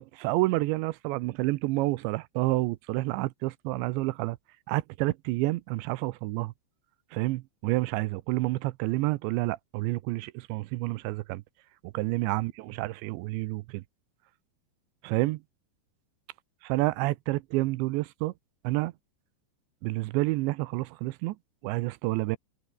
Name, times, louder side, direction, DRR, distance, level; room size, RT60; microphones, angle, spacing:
voice 1, 0.0-4.4 4.7-6.5 7.1-11.4 11.8-13.8 15.0-15.4 16.7-18.3 18.6-18.9 19.8-21.4 21.6-22.4, right 20 dB, 85° right, 2.9 m, -29 dB
omnidirectional pair, 5.3 m